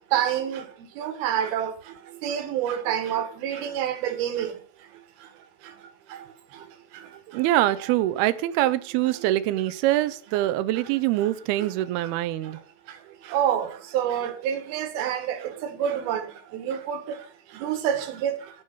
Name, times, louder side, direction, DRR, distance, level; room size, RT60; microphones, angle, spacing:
voice 1, 0.1-0.6 1.0-1.7 2.2-4.5 13.3-15.4 15.8-16.2 16.5-17.0 17.6-18.4, right 9 dB, 65° right, 2.9 m, -27 dB
voice 2, 7.3-12.6, right 15 dB, 85° right, 2.2 m, -24 dB
14.5 x 5.5 x 6.5 m
omnidirectional pair, 5.2 m